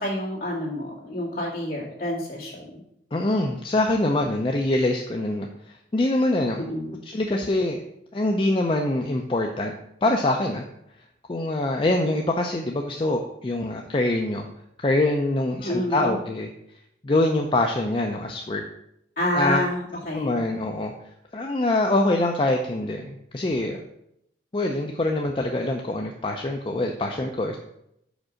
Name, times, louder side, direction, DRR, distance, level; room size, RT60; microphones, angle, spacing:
voice 1, 0.0-2.8 6.6-7.0 15.6-16.2 19.2-20.4, equal, 55° left, -4 dB, 2.2 m, -28 dB
voice 2, 3.1-6.7 7.0-7.8 8.1-9.7 10.0-10.6 11.3-14.5 14.8-16.5 17.0-18.6 19.3-19.6 20.1-20.9 21.3-23.8 24.5-27.6, left 2 dB, 30° left, 3 dB, 0.4 m, -24 dB
5.1 x 4.7 x 6.2 m, 0.78 s
head